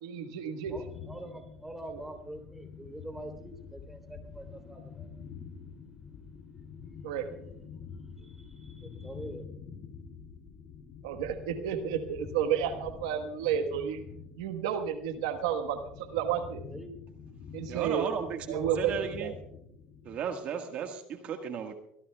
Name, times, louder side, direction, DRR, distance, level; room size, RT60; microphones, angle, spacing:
voice 1, 0.0-0.7 7.0-7.3 11.0-14.0 14.4-16.6 17.5-18.1 18.5-18.9 19.2-19.3, right 9 dB, 85° right, 1.3 m, -31 dB
sound 1, 0.6-20.3, left 6 dB, 55° left, 2.8 m, -47 dB
voice 2, 0.7-5.1 8.2-9.5 16.7-16.9, right 1 dB, 10° right, 3.3 m, -45 dB
voice 3, 17.7-19.3 20.0-21.8, right 7 dB, 55° right, 1.6 m, -35 dB
24.0 x 18.5 x 2.3 m
supercardioid pair, 95°, 3 cm